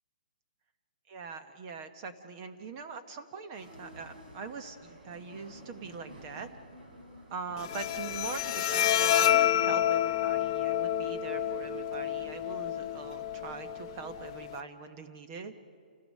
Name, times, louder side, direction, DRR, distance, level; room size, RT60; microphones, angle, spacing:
voice 1, 1.1-6.5 7.3-15.6, right 5 dB, 20° right, 8 dB, 0.8 m, -42 dB
sound 1, 3.5-10.1, equal, 90° right, 5.5 m, -51 dB
Bowed string instrument, 7.6-14.6, left 11 dB, 25° left, 0.6 m, -29 dB
28.5 x 16.5 x 6.4 m, 2.3 s
hypercardioid pair, 175°, 5 cm